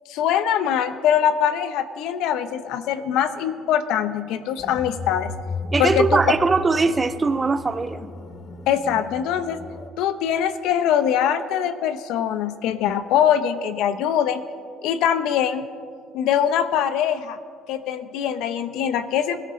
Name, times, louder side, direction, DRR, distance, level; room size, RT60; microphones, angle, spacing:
voice 1, 0.1-5.3 5.8-6.1 8.7-9.6 10.0-14.4 14.8-15.6 16.1-17.4 17.7-19.4, left 9 dB, 75° left, 12 dB, 0.7 m, -22 dB
sound 1, 4.6-9.9, left 1 dB, 35° left, 0.9 m, -34 dB
voice 2, 5.7-8.0, right 4 dB, 20° right, 13 dB, 0.4 m, -20 dB
20.5 x 13.5 x 3.2 m, 2.1 s
cardioid pair, 140°, 0 cm